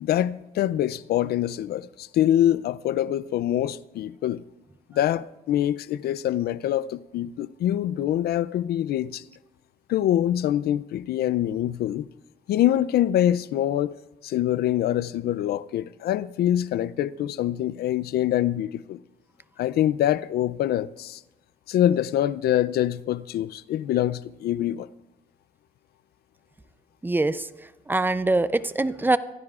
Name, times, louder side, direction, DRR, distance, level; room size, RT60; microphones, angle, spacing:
voice 1, 0.0-4.4 4.9-9.2 9.9-12.1 12.5-13.9 14.2-19.0 19.6-21.2 21.7-24.9, left 12 dB, 80° left, 0.4 m, -25 dB
voice 2, 27.0-27.4 27.9-29.2, right 2 dB, 10° right, 0.5 m, -23 dB
23.5 x 15.5 x 2.4 m
cardioid pair, 120°, 16 cm